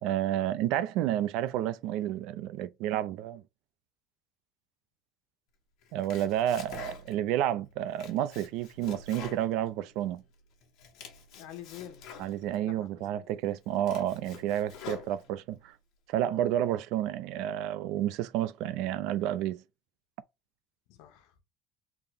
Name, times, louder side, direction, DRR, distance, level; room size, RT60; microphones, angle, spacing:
voice 1, 0.0-3.4 5.9-10.2 12.2-15.7 16.1-19.6, right 12 dB, 60° right, 0.3 m, -30 dB
Domestic sounds home sounds, 5.8-7.3 7.7-10.2 10.6-12.6 13.1-13.2 13.6-15.6, left 5 dB, 50° left, 1.3 m, -47 dB
voice 2, 11.3-12.0 12.6-13.3 20.9-21.4, left 11 dB, 70° left, 1.0 m, -47 dB
3.8 x 2.9 x 3.4 m
cardioid pair, 175°, 0 cm